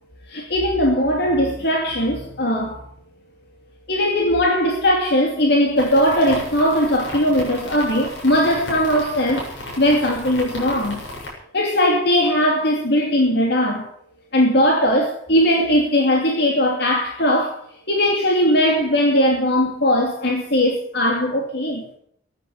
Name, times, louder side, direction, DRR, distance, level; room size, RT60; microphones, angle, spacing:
voice 1, 0.3-2.8 3.9-9.5 9.8-11.0 11.5-13.9 14.3-21.8, equal, 60° left, 2.8 m, -19 dB
sound 1, 5.8-11.3, left 1 dB, 80° left, 8.0 m, -33 dB
14.5 x 11.0 x 8.3 m
head